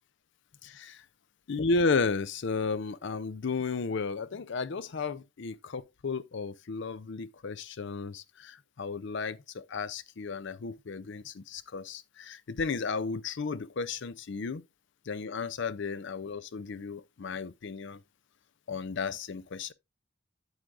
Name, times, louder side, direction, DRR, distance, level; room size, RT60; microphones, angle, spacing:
voice 1, 0.6-0.9 1.5-14.6 15.1-18.0 18.7-19.7, left 4 dB, 60° left, 0.5 m, -33 dB
8.9 x 7.9 x 2.4 m
head